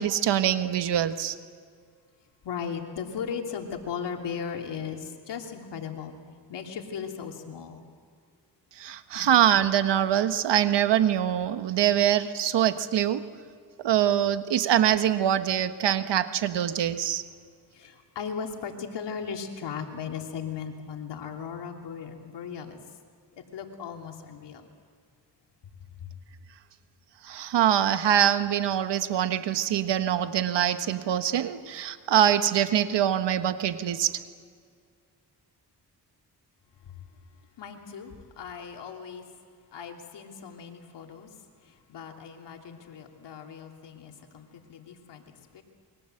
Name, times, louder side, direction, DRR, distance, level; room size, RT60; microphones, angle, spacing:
voice 1, 0.0-1.3 8.8-13.2 13.8-17.2 27.2-34.2, right 10 dB, 90° right, 10 dB, 1.4 m, -24 dB
voice 2, 2.4-6.2 6.5-7.8 9.1-9.3 17.7-22.8 23.5-24.6 26.0-26.1 37.6-39.2 39.7-41.3 41.7-45.2 45.5-45.6, left 7 dB, 85° left, 2 dB, 3.1 m, -37 dB
28.5 x 23.0 x 8.0 m, 2.1 s
cardioid pair, 70°, 41 cm